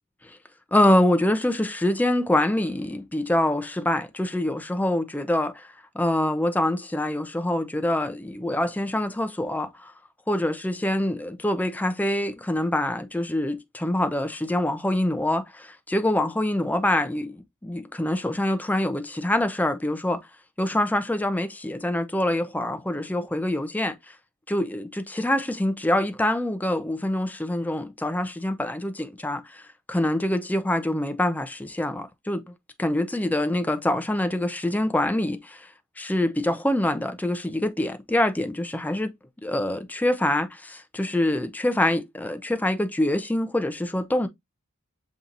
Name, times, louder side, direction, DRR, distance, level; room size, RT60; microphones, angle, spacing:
voice 1, 0.7-5.7 5.9-9.9 10.3-20.2 20.6-24.1 24.5-29.6 29.9-32.4 32.8-35.7 36.0-39.1 39.4-44.3, left 1 dB, 5° left, 0.4 m, -25 dB
7.2 x 2.7 x 2.6 m
head